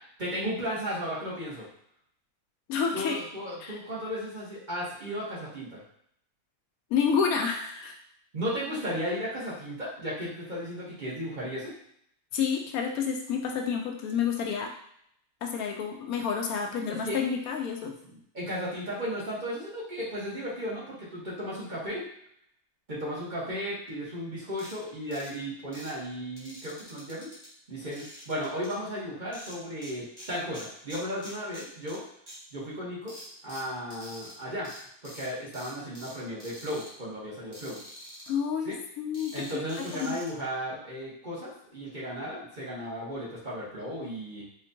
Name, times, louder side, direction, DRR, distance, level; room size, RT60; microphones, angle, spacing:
voice 1, 0.2-1.7 2.9-5.8 8.3-11.7 16.9-17.2 18.0-22.1 22.9-27.3 27.7-32.0 32.5-33.1 33.4-34.7 35.0-37.8 38.6-38.8 39.3-44.4, equal, 35° right, -8 dB, 1.0 m, -35 dB
voice 2, 2.7-3.2 3.6-3.8 6.9-8.0 12.3-14.7 15.4-17.9 38.3-40.2, left 6 dB, 80° left, 3 dB, 1.0 m, -29 dB
sound 1, 24.6-24.7 25.1-25.3 25.7-25.9 26.4-27.5 27.9-28.7 29.3-29.9 30.2-32.0 32.3-32.4 33.1-34.3 34.6-34.8 35.0-35.3 35.5-36.1 36.4-36.9 37.5-38.3 39.1-40.3, equal, 15° right, 1.2 m, -46 dB
4.3 x 2.2 x 2.6 m, 0.70 s
omnidirectional pair, 1.5 m